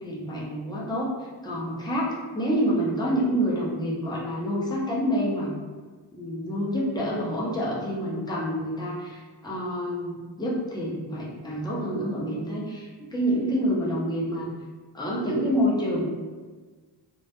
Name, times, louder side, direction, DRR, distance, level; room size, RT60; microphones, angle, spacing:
voice 1, 0.0-1.1 1.4-5.6 6.1-14.5 14.9-16.0, equal, 10° left, -6 dB, 0.5 m, -27 dB
2.2 x 2.0 x 2.8 m, 1.4 s
wide cardioid pair, 80°, 46 cm